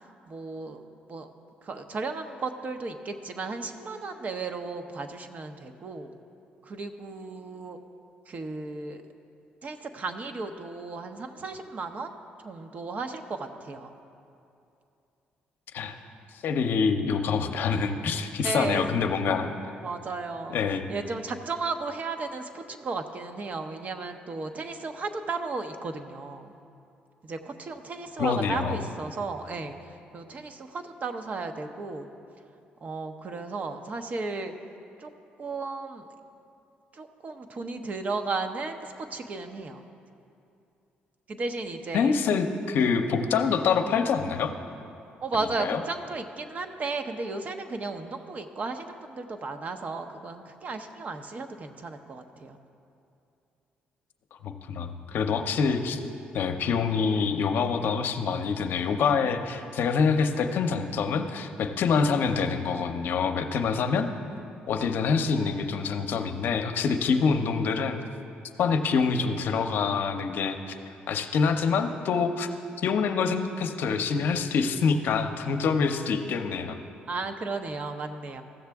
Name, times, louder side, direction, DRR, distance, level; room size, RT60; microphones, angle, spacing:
voice 1, 0.3-0.8 1.1-1.3 1.6-6.1 6.6-7.8 8.3-9.0 9.6-12.1 12.4-13.9 18.4-19.1 19.8-20.6 20.9-26.5 27.2-32.1 32.8-34.5 35.0-35.1 35.4-36.1 36.9-39.8 41.3-42.2 45.2-52.6 77.1-78.4, right 3 dB, 45° right, 7 dB, 0.7 m, -34 dB
voice 2, 16.4-19.5 20.5-20.8 28.2-28.8 41.9-44.5 45.6-45.8 54.4-56.0 56.3-64.1 64.7-68.0 68.6-70.7 71.1-72.5 72.8-76.8, left 5 dB, 70° left, 7 dB, 0.6 m, -26 dB
15.5 x 6.6 x 3.5 m, 2.6 s
cardioid pair, 75°, 4 cm